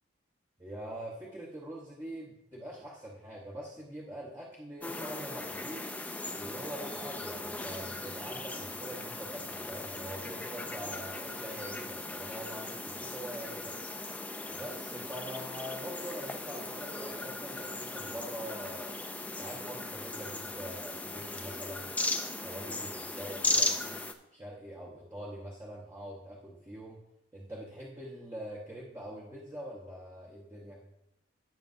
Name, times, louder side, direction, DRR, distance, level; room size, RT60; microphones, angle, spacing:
voice 1, 0.6-5.9 6.4-13.8 14.5-18.9 19.3-21.8 22.4-23.9 24.3-27.0 27.3-30.8, right 1 dB, 15° right, -4 dB, 1.0 m, -44 dB
sound 1, 4.8-24.1, left 2 dB, 10° left, 0.4 m, -37 dB
15.0 x 6.6 x 2.6 m, 0.91 s
head